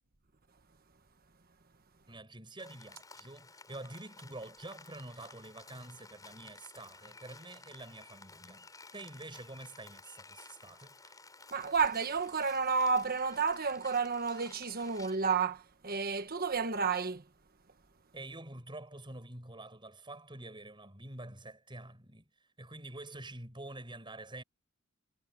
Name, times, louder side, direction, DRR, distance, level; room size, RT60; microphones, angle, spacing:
voice 1, 2.1-8.7 8.9-11.2 18.1-22.2 22.6-24.4, right 2 dB, 20° right, 7.8 m, -47 dB
Rain, 2.6-15.2, left 3 dB, 15° left, 5.1 m, -55 dB
voice 2, 11.5-17.2, right 5 dB, 45° right, 1.4 m, -31 dB
head